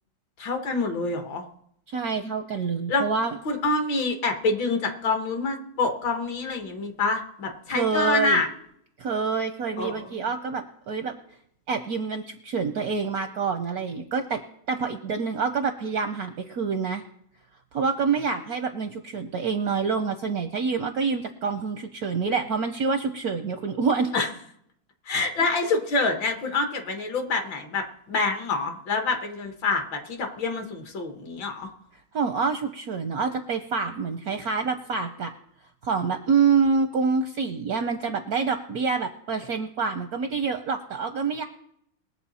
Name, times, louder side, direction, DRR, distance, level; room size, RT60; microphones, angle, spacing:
voice 1, 0.4-1.5 2.9-3.1 3.5-8.5 9.8-10.1 24.1-24.3 25.1-31.7, left 3 dB, 65° left, 4 dB, 2.0 m, -26 dB
voice 2, 1.9-3.4 7.7-8.4 9.0-11.1 11.7-17.0 17.7-24.1 25.4-25.7 32.1-35.3 35.8-41.4, right 5 dB, 70° right, 7 dB, 0.9 m, -27 dB
21.5 x 7.3 x 4.2 m, 0.73 s
omnidirectional pair, 2.3 m